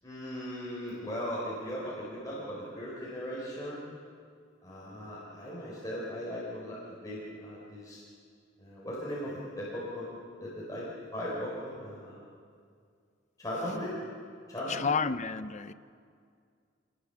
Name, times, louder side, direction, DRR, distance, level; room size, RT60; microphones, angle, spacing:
voice 1, 0.0-3.9 4.6-8.0 8.6-10.1 10.4-12.2 13.4-13.9 14.5-15.0, equal, 20° left, -7 dB, 4.5 m, -38 dB
voice 2, 14.7-15.7, left 5 dB, 35° left, 12 dB, 0.6 m, -30 dB
26.5 x 20.0 x 6.9 m, 2.2 s
head